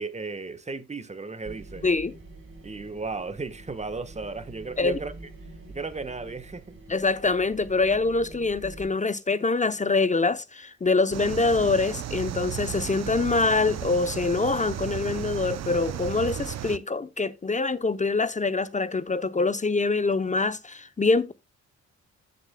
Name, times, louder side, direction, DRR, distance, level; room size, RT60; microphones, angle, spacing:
voice 1, 0.0-1.9 2.6-5.1 5.7-6.8, right 3 dB, 25° right, 1.3 m, -35 dB
sound 1, 1.4-8.9, right 2 dB, 45° right, 3.3 m, -45 dB
voice 2, 6.9-21.3, left 3 dB, 25° left, 0.7 m, -25 dB
sound 2, 11.1-16.8, right 11 dB, 60° right, 0.6 m, -34 dB
15.0 x 6.8 x 2.2 m
cardioid pair, 80°, 30 cm